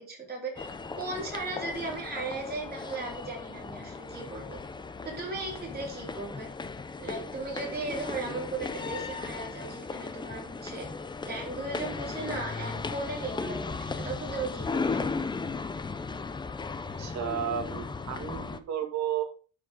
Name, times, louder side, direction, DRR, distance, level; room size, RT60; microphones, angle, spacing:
voice 1, 0.0-4.6 5.0-6.5 7.0-10.9 11.3-15.0, right 3 dB, 30° right, -2 dB, 4.0 m, -37 dB
sound 1, 0.6-18.6, left 4 dB, 15° left, 0.5 m, -36 dB
voice 2, 17.0-18.4 18.7-19.3, right 8 dB, 55° right, 4 dB, 2.4 m, -32 dB
11.0 x 5.1 x 3.7 m, 0.38 s
cardioid pair, 150°, 33 cm